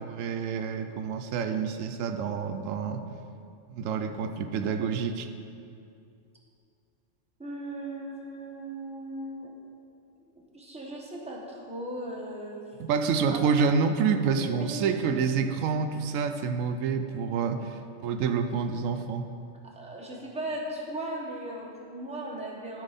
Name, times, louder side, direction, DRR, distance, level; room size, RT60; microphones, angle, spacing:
voice 1, 0.0-3.0 3.7-5.3 12.8-19.3, right 6 dB, 90° right, 7 dB, 1.0 m, -28 dB
voice 2, 7.4-9.5 10.3-12.6 13.3-13.4 14.4-15.0 17.5-17.7 19.8-22.8, right 1 dB, 5° right, -3 dB, 1.0 m, -37 dB
12.5 x 4.8 x 4.1 m, 2.5 s
omnidirectional pair, 1.3 m